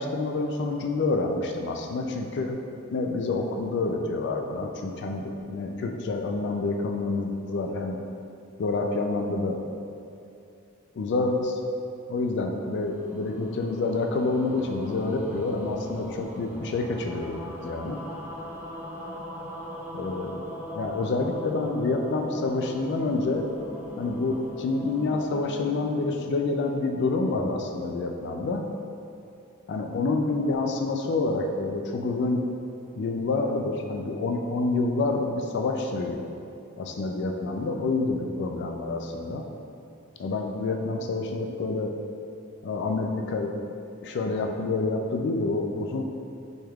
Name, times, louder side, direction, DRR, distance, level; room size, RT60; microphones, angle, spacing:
voice 1, 0.0-2.6 2.9-8.0 8.6-9.6 11.0-11.6 12.1-18.0 19.9-20.4 20.7-23.5 24.0-28.7 29.7-32.4 33.0-36.3 36.8-39.4 40.2-41.9 42.6-43.5 44.0-46.0, left 3 dB, 55° left, 3 dB, 0.3 m, -28 dB
sound 1, 12.5-27.0, equal, 10° right, 0.4 m, -40 dB
6.3 x 3.5 x 2.3 m, 2.6 s
head